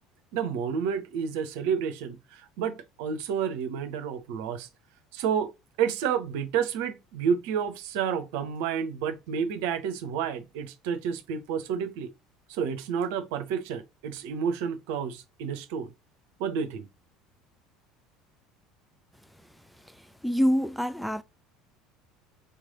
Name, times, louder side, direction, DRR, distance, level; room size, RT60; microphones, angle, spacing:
voice 1, 0.3-4.7 5.1-5.5 5.8-12.1 12.5-15.9 16.4-16.9, right 7 dB, 70° right, 0.8 m, -30 dB
voice 2, 20.2-21.2, equal, ahead, 0.5 m, -25 dB
4.2 x 3.3 x 3.9 m
hypercardioid pair, 70°, 0 cm